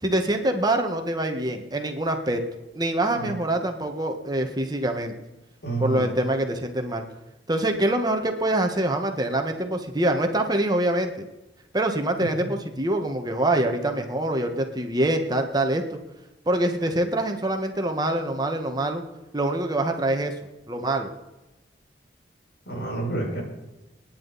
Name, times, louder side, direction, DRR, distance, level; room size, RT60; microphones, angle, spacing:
voice 1, 0.0-2.4 2.7-5.1 5.8-7.0 7.5-11.1 11.7-16.0 16.5-19.0 19.3-20.3 20.7-21.1, right 1 dB, 25° right, 4 dB, 1.5 m, -25 dB
voice 2, 5.6-6.1 12.2-12.5 22.6-23.4, right 3 dB, 70° left, -2 dB, 6.8 m, -29 dB
29.5 x 10.0 x 4.2 m, 1.1 s
head